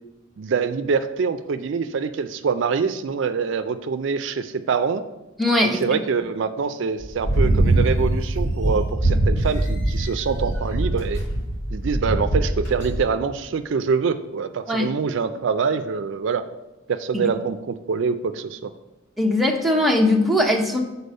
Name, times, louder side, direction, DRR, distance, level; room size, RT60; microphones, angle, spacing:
voice 1, 0.4-5.0 5.6-11.2 11.7-16.4 16.9-18.7, right 5 dB, 65° right, 10 dB, 0.4 m, -25 dB
voice 2, 5.4-5.8 14.7-14.9 17.1-17.3 19.2-20.8, left 1 dB, ahead, 0 dB, 0.7 m, -20 dB
sound 1, 7.0-13.0, right 1 dB, 70° left, 1.9 m, -22 dB
6.9 x 4.1 x 5.3 m, 1.0 s
head